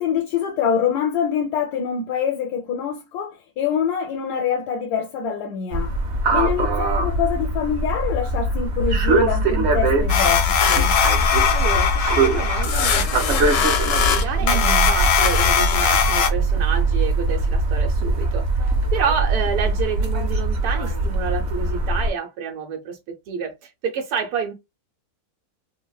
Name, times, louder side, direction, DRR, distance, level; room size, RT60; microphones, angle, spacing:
voice 1, 0.0-5.9 6.3-11.0 14.4-14.9, left 7 dB, 85° left, 1.1 m, -25 dB
sound 1, 5.7-22.1, right 2 dB, 60° right, 0.8 m, -22 dB
sound 2, 10.1-16.3, left 8 dB, 70° left, 0.9 m, -20 dB
voice 2, 11.2-24.5, right 6 dB, 80° right, 1.1 m, -29 dB
3.2 x 2.0 x 2.2 m
omnidirectional pair, 1.6 m